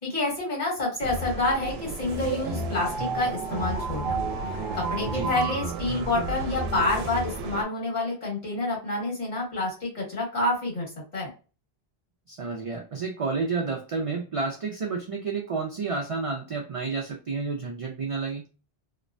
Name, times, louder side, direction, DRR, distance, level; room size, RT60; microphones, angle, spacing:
voice 1, 0.0-4.2 4.7-10.9 11.1-11.3, left 2 dB, 45° left, -4 dB, 1.8 m, -28 dB
sound 1, 1.0-7.6, right 3 dB, 85° right, 0.8 m, -31 dB
voice 2, 12.3-18.5, right 4 dB, 55° right, 1 dB, 0.4 m, -30 dB
2.9 x 2.1 x 2.5 m, 0.34 s
omnidirectional pair, 1.0 m